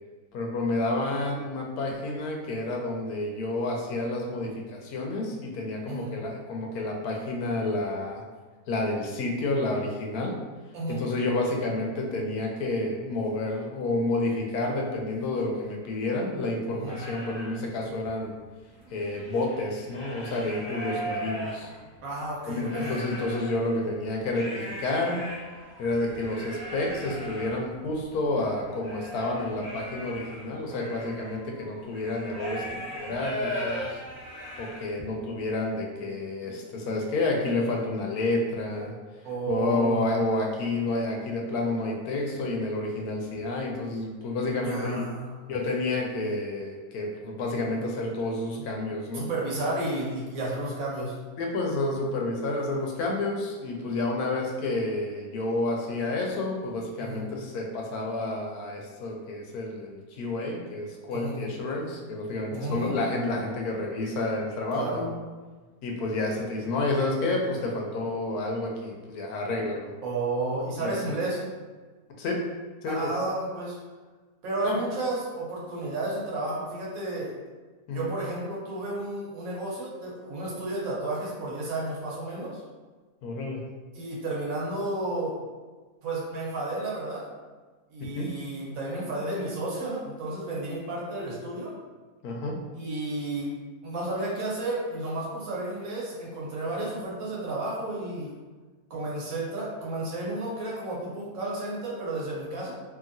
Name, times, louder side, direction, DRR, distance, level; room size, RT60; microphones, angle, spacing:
voice 1, 0.3-8.2 8.7-10.4 10.9-18.4 18.9-21.7 22.5-25.2 25.8-32.6 32.9-34.0 34.6-38.9 39.5-45.0 45.5-49.3 51.4-65.1 65.8-69.9 70.8-70.9 72.2-72.4 72.8-73.1 74.6-74.8 77.9-78.1 83.2-83.6 88.0-88.3 92.2-92.6, left 2 dB, 90° left, 0 dB, 1.1 m, -30 dB
sound 1, 16.9-17.5 18.0-18.1 18.4-22.0 22.5-23.5 24.3-35.1, equal, 15° left, 0.9 m, -38 dB
voice 2, 22.0-23.0 39.2-40.1 44.6-45.3 49.1-51.2 57.0-57.2 61.1-61.4 62.5-63.0 64.7-65.0 70.0-71.4 72.9-73.8 74.4-77.3 77.9-82.6 83.9-85.4 86.0-87.2 87.9-91.7 92.7-93.5 93.8-98.3 98.9-102.7, right 2 dB, 70° right, -4 dB, 1.2 m, -32 dB
2.8 x 2.7 x 2.5 m, 1.4 s
omnidirectional pair, 1.6 m